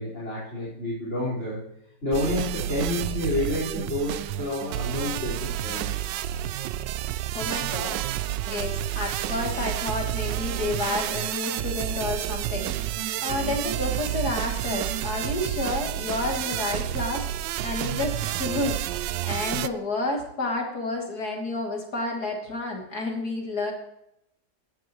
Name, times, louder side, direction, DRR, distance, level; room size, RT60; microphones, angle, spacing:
voice 1, 0.0-1.6 2.0-6.2, left 1 dB, 40° left, -8 dB, 5.1 m, -29 dB
sound 1, 2.1-19.7, right 13 dB, 90° right, 1.3 m, -30 dB
voice 2, 7.3-8.0 8.5-12.7 13.2-17.3 17.6-18.8 19.2-23.7, left 2 dB, 60° left, 0 dB, 3.4 m, -30 dB
17.5 x 11.5 x 3.1 m, 0.78 s
omnidirectional pair, 1.9 m